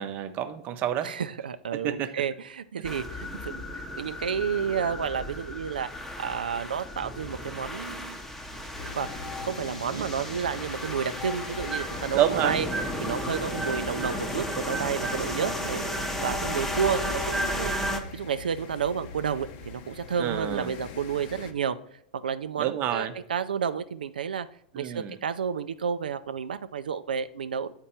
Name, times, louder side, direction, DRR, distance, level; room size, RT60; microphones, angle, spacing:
voice 1, 0.0-1.1 1.7-2.1 9.9-10.1 12.1-12.6 20.2-20.8 22.6-23.1 24.7-25.2, right 10 dB, 40° right, 9 dB, 0.7 m, -28 dB
voice 2, 1.0-5.9 6.2-8.2 9.0-12.7 13.0-15.8 16.2-21.8 22.1-24.5 24.8-27.7, right 7 dB, 80° right, 12 dB, 0.4 m, -31 dB
sound 1, 2.8-18.0, equal, 5° left, 0.8 m, -33 dB
sound 2, 8.8-21.5, left 5 dB, 50° left, 0.8 m, -43 dB
7.5 x 4.4 x 4.2 m, 0.73 s
hypercardioid pair, 110°, 5 cm